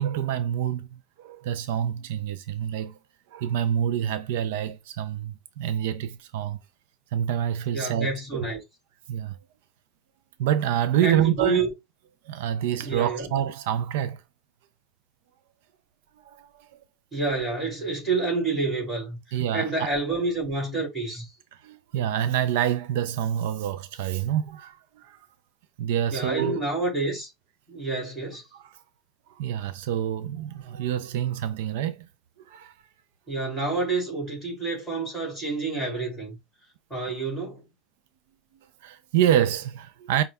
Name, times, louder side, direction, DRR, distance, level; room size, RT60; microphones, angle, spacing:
voice 1, 0.0-3.0 3.3-6.6 7.1-8.5 9.1-9.4 10.4-11.6 12.2-14.2 16.2-16.7 19.3-19.9 21.6-25.2 25.8-26.6 28.5-28.8 29.3-32.1 32.4-32.7 38.8-40.2, right 10 dB, 75° right, 0.4 m, -27 dB
voice 2, 7.7-8.6 11.0-11.7 12.8-13.3 17.1-21.3 26.1-27.3 27.7-28.4 33.3-36.4 36.9-37.6, right 3 dB, 5° right, 2.8 m, -28 dB
5.3 x 2.3 x 3.4 m
cardioid pair, 180°, 0 cm